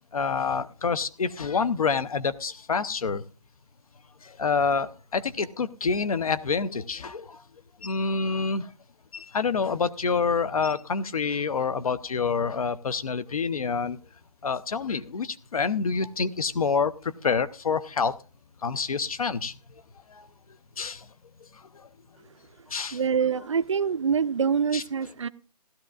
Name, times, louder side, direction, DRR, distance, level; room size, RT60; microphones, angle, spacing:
voice 1, 0.1-3.2 4.2-7.4 7.8-8.7 9.1-14.0 14.4-18.1 18.6-19.6 20.1-20.3 20.8-21.1 21.7-21.9 22.7-23.0 24.7-24.8, left 5 dB, 60° left, 15 dB, 0.7 m, -27 dB
voice 2, 22.9-25.3, right 6 dB, 45° right, 14 dB, 0.4 m, -25 dB
16.0 x 13.0 x 2.4 m, 0.34 s
hypercardioid pair, 175°, 21 cm